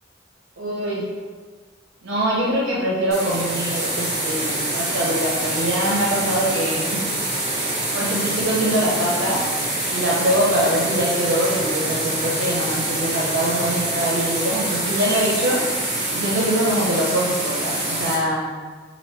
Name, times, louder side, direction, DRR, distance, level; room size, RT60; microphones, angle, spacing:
voice 1, 0.6-1.1 2.0-7.0 7.9-9.4 9.9-15.6 16.1-18.5, right 1 dB, 85° right, -4 dB, 0.6 m, -23 dB
sound 1, 3.1-18.2, right 1 dB, 35° right, 0.9 m, -25 dB
3.0 x 2.6 x 3.1 m, 1.5 s
head